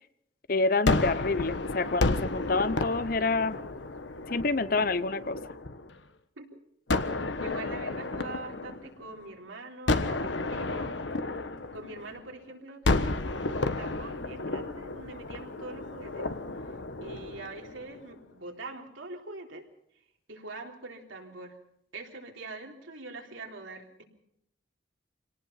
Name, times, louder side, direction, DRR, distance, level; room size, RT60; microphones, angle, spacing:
voice 1, 0.5-3.6 4.3-5.4, left 3 dB, 45° left, 0.8 m, -27 dB
Gunshot gunfire, 0.9-6.0 6.9-9.3 9.9-12.3 12.8-18.1, left 2 dB, 70° left, 1.3 m, -32 dB
voice 2, 7.3-11.0 11.7-16.3 16.6-16.7 17.0-19.7 20.3-21.6 21.9-24.0, right 2 dB, 85° right, 3.7 m, -43 dB
26.5 x 18.5 x 5.8 m
head